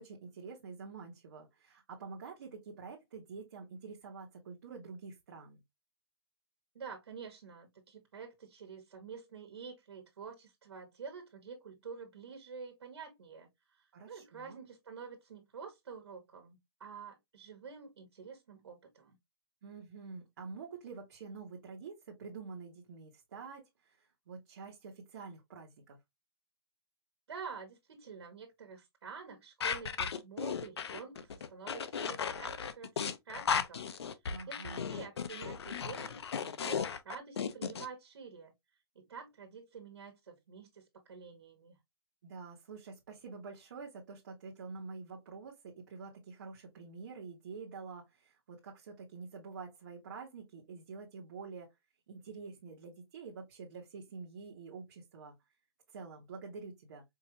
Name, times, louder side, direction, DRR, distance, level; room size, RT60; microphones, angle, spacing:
voice 1, 0.0-5.6 13.9-14.6 19.6-26.0 34.3-35.0 42.2-51.7 52.1-55.3 55.9-57.0, right 4 dB, 45° right, 1.1 m, -47 dB
voice 2, 6.7-19.2 27.3-33.8 34.5-38.5 38.9-41.8, right 5 dB, 85° right, 1.4 m, -48 dB
sound 1, 29.6-37.9, left 7 dB, 80° left, 0.7 m, -36 dB
4.7 x 2.6 x 2.8 m
hypercardioid pair, 175°, 13 cm